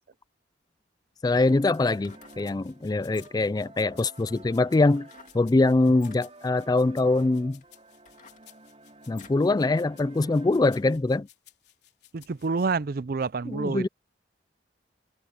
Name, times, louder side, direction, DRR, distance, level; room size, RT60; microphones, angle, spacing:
sound 1, 0.7-0.8 1.9-2.5 3.0-3.6 5.1-5.4 5.9-6.2 7.0-7.1 7.6-9.5 9.9-10.0, left 7 dB, 45° left, 2.4 m, -53 dB
voice 1, 1.2-5.1 5.3-7.6 9.1-11.3 13.5-13.9, left 2 dB, 20° left, 0.3 m, -23 dB
sound 2, 1.4-10.8, right 2 dB, 35° right, 6.2 m, -51 dB
sound 3, 1.7-12.7, left 13 dB, 60° left, 4.3 m, -57 dB
voice 2, 12.1-13.9, right 4 dB, 55° right, 0.5 m, -28 dB
head